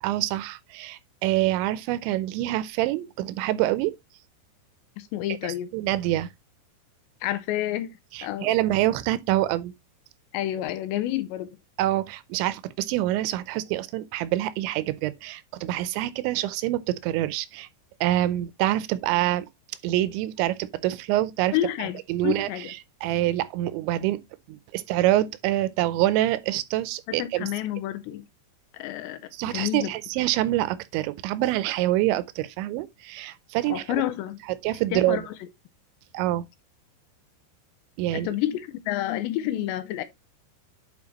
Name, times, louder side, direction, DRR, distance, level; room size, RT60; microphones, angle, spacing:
voice 1, 0.0-3.9 5.7-6.3 8.1-9.7 11.8-17.7 18.0-19.5 19.8-21.5 22.1-24.2 24.5-27.5 29.3-33.8 34.6-35.3 36.1-36.5 38.0-38.3, right 15 dB, 85° right, 3.0 m, -26 dB
voice 2, 5.0-5.7 7.2-8.5 10.3-11.5 21.5-22.7 24.0-24.1 27.1-28.3 28.7-29.9 33.7-34.4 34.9-35.5 38.1-40.0, left 13 dB, 85° left, 2.8 m, -29 dB
9.5 x 4.7 x 2.9 m
omnidirectional pair, 5.2 m